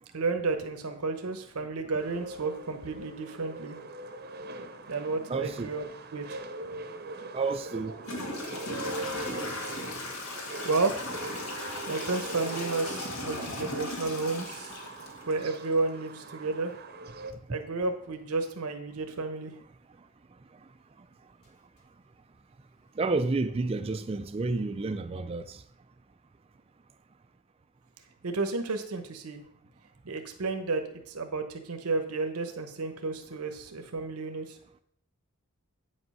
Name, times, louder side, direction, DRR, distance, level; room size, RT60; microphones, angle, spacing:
voice 1, 0.1-3.8 4.9-5.8 6.1-6.4 10.6-10.9 11.9-16.7 17.5-19.5 28.2-29.4 30.0-34.5, right 3 dB, 90° right, 1.0 m, -32 dB
sound 1, 2.0-17.3, right 2 dB, 45° right, 0.8 m, -42 dB
voice 2, 5.3-5.7 7.3-8.0 9.4-9.6 10.0-10.1 17.5-17.6 23.0-25.6, right 3 dB, 25° right, 0.4 m, -30 dB
Toilet flush / Trickle dribble, 7.2-7.3 8.0-15.8, left 2 dB, 80° left, 2.0 m, -37 dB
8.8 x 5.3 x 5.5 m
head